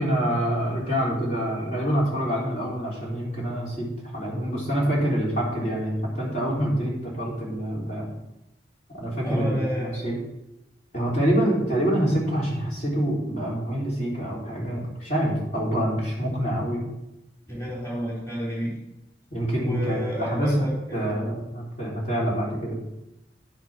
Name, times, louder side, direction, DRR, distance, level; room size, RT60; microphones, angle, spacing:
voice 1, 0.0-8.0 8.9-10.2 10.9-16.8 19.3-22.7, equal, 45° left, -5 dB, 3.5 m, -26 dB
voice 2, 9.2-10.0 17.5-18.8 19.6-21.3, equal, 15° left, -6 dB, 3.3 m, -31 dB
11.0 x 5.9 x 6.1 m, 0.91 s
head